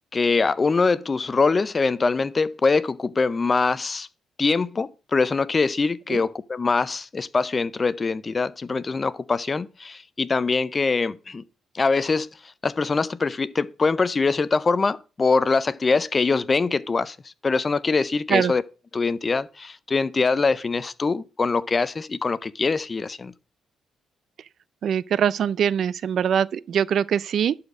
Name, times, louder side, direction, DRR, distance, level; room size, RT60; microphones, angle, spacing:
voice 1, 0.1-4.1 4.4-11.4 11.7-18.6 18.9-23.3, left 4 dB, 30° left, 0.5 m, -23 dB
voice 2, 24.8-27.5, right 8 dB, 65° right, 0.4 m, -22 dB
11.5 x 4.3 x 6.2 m
cardioid pair, 90°, 0 cm